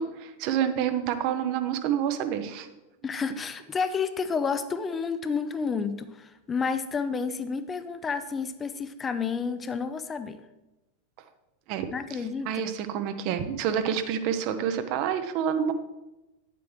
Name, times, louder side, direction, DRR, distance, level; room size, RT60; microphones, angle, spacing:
voice 1, 0.0-2.7 11.7-12.2 12.5-15.7, right 8 dB, 45° right, 10 dB, 0.7 m, -28 dB
voice 2, 3.0-10.4 11.9-12.5, left 5 dB, 20° left, 11 dB, 0.5 m, -30 dB
9.0 x 7.7 x 3.2 m, 1.0 s
figure-of-eight pair, 90°, 0 cm